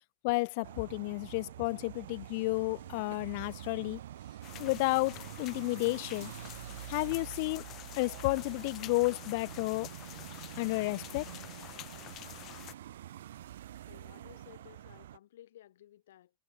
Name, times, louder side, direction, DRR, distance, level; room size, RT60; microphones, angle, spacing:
voice 1, 0.2-4.0 4.6-6.3 6.9-7.6 8.0-9.9 10.6-11.3, left 26 dB, 45° left, 0.5 m, -31 dB
sound 1, 0.6-15.2, right 12 dB, 90° right, 0.7 m, -46 dB
sound 2, 4.4-12.7, left 15 dB, 25° left, 1.0 m, -48 dB
voice 2, 13.9-16.3, left 12 dB, 80° left, 5.8 m, -56 dB
supercardioid pair, 175°, 0 cm